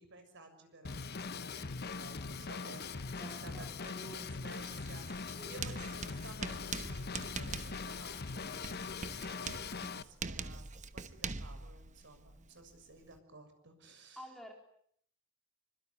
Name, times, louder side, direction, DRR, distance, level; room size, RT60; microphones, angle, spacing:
voice 1, 0.0-10.7 10.9-14.3, right 2 dB, 60° right, 8 dB, 6.8 m, -55 dB
Drum kit / Drum, 0.8-10.0, left 4 dB, 50° left, 1.1 m, -41 dB
voice 2, 3.0-4.3 5.4-5.9 14.2-14.5, equal, ahead, 2 dB, 4.0 m, -53 dB
Writing, 4.5-13.2, right 4 dB, 35° right, 1.1 m, -44 dB
26.5 x 25.5 x 8.5 m, 0.67 s
head